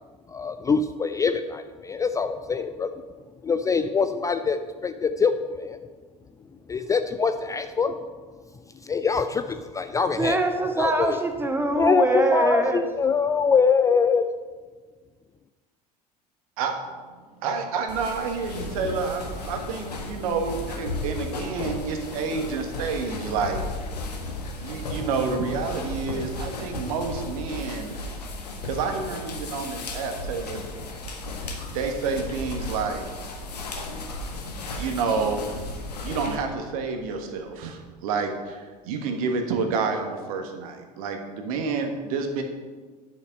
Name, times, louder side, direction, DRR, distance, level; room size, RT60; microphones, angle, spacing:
voice 1, 0.3-2.9 3.4-5.8 6.7-8.0 8.8-10.4 10.8-11.2 11.8-14.2, left 5 dB, 15° left, 8 dB, 0.4 m, -24 dB
voice 2, 10.1-12.8, right 2 dB, 10° right, 5 dB, 1.3 m, -23 dB
voice 3, 17.4-23.6 24.6-28.0 28.6-30.6 31.7-33.0 34.8-35.4 36.0-42.4, right 5 dB, 60° right, 5 dB, 1.4 m, -29 dB
sound 1, 17.9-36.4, left 3 dB, 75° left, 1.4 m, -35 dB
sound 2, 23.1-38.7, right 1 dB, 85° right, 1.3 m, -44 dB
10.5 x 6.3 x 5.3 m, 1.4 s
figure-of-eight pair, 70°, 21 cm